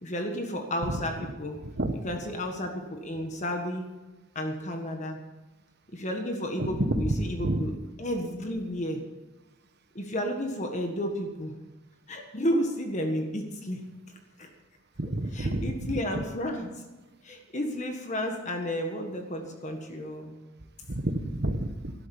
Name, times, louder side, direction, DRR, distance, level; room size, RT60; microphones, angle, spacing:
voice 1, 0.0-1.6 2.0-3.9 4.3-5.2 5.9-7.7 8.0-9.0 9.9-11.5 12.1-13.8 14.4-14.5 15.3-16.7 17.2-20.4, equal, 35° left, 4 dB, 1.5 m, -32 dB
voice 2, 6.6-7.7 15.0-16.2 20.9-21.9, right 1 dB, 50° right, 8 dB, 1.2 m, -29 dB
13.0 x 12.0 x 7.2 m, 1.1 s
head